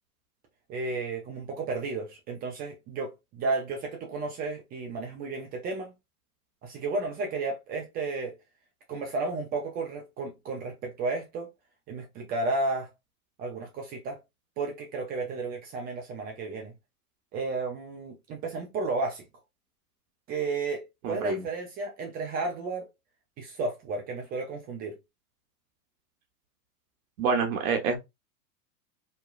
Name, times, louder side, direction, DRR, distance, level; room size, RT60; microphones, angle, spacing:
voice 1, 0.7-5.9 6.6-8.4 8.9-11.5 11.9-12.9 13.4-14.2 14.6-16.7 17.3-19.2 20.3-22.9 23.4-25.0, right 3 dB, 20° right, 0.4 m, -33 dB
voice 2, 21.0-21.4 27.2-28.0, right 5 dB, 60° right, 0.9 m, -27 dB
3.0 x 2.2 x 2.2 m
hypercardioid pair, 110°, 46 cm